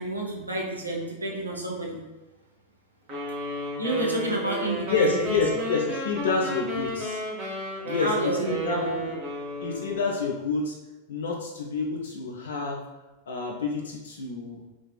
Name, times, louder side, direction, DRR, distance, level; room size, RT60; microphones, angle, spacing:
voice 1, 0.0-2.0 3.8-5.4 8.0-9.2, right 1 dB, 80° right, -1 dB, 0.5 m, -29 dB
sound 1, 3.1-10.3, equal, 35° right, 0.7 m, -33 dB
voice 2, 4.9-7.2 7.8-8.8 9.6-10.8 11.1-12.8 13.3-14.6, left 4 dB, 65° left, 0 dB, 0.3 m, -28 dB
2.6 x 2.3 x 2.2 m, 1.1 s
figure-of-eight pair, 90°, 0 cm